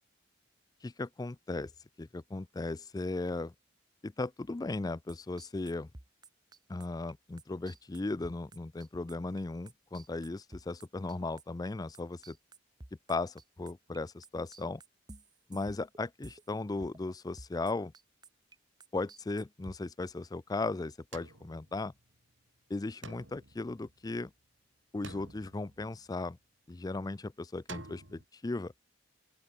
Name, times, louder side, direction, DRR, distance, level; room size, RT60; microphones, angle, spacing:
voice 1, 0.8-1.7 2.0-3.5 4.0-5.9 6.7-12.4 13.1-14.8 15.5-17.9 18.9-21.9 22.7-24.3 24.9-26.4 26.7-28.7, left 2 dB, 20° left, 0.4 m, -37 dB
sound 1, 5.1-14.0 14.2-16.5 16.8-17.1 17.4-18.6 18.8-19.8, right 2 dB, 20° right, 1.3 m, -52 dB
sound 2, 21.1-22.3 23.0-24.5 25.0-26.4 27.7-28.2, right 3 dB, 75° right, 5.8 m, -50 dB
open air
head